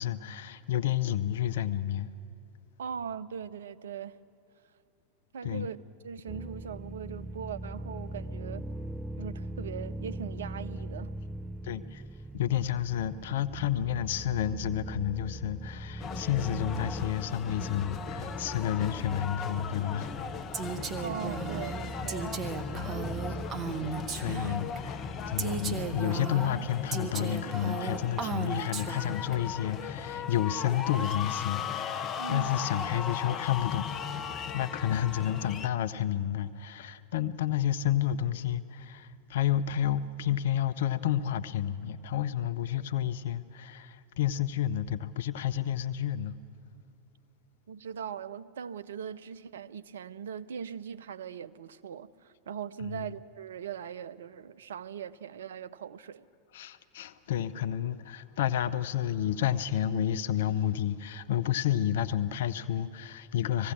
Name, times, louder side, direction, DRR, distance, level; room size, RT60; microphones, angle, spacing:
voice 1, 0.0-2.1 5.4-5.7 11.6-12.0 12.3-20.7 22.7-23.0 24.1-33.9 34.5-46.4 52.8-53.1 56.5-63.7, left 11 dB, 65° left, 0.6 m, -30 dB
voice 2, 2.8-4.2 5.3-5.8 6.0-8.7 9.2-11.1 21.0-22.4 32.2-32.7 47.7-56.2, right 7 dB, 70° right, 0.5 m, -40 dB
sound 1, 6.3-26.0, right 1 dB, 10° right, 0.4 m, -41 dB
sound 2, 16.0-35.7, left 7 dB, 35° left, 0.9 m, -37 dB
Female speech woman speaking, 20.5-24.8 25.4-29.4, right 6 dB, 35° right, 1.3 m, -36 dB
20.0 x 16.0 x 8.6 m
figure-of-eight pair, 90°, 0 cm